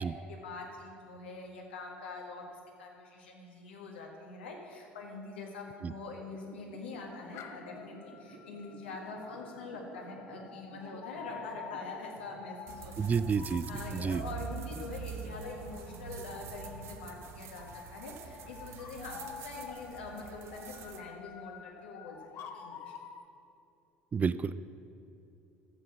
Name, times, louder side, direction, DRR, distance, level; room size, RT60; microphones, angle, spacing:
voice 1, 0.0-2.4 2.8-13.2 13.7-22.2 22.5-22.9, left 3 dB, 70° left, 0 dB, 1.7 m, -44 dB
sound 1, 6.3-12.2, right 5 dB, 60° right, 2.3 m, -53 dB
sound 2, 7.1-23.2, left 7 dB, 45° left, 0.8 m, -49 dB
sound 3, 12.7-21.0, right 6 dB, 45° right, 0.8 m, -45 dB
voice 2, 13.0-13.6 13.9-14.2 24.1-24.5, right 6 dB, 25° right, 15 dB, 0.3 m, -30 dB
13.0 x 7.6 x 6.1 m, 2.7 s
figure-of-eight pair, 65°, 6 cm